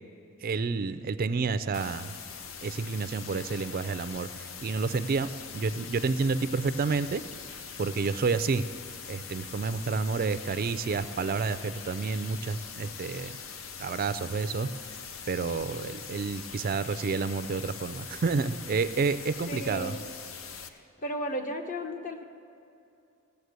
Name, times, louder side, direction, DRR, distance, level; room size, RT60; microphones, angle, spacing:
voice 1, 0.4-2.1 2.6-5.3 5.5-7.2 7.8-8.6 9.1-13.4 13.8-14.7 15.3-20.0, right 4 dB, 45° right, 13 dB, 0.4 m, -29 dB
sound 1, 1.7-20.7, left 6 dB, 70° left, 0.7 m, -42 dB
voice 2, 19.5-20.0 20.7-22.2, equal, 40° left, 5 dB, 0.9 m, -35 dB
16.0 x 6.9 x 8.1 m, 2.7 s
head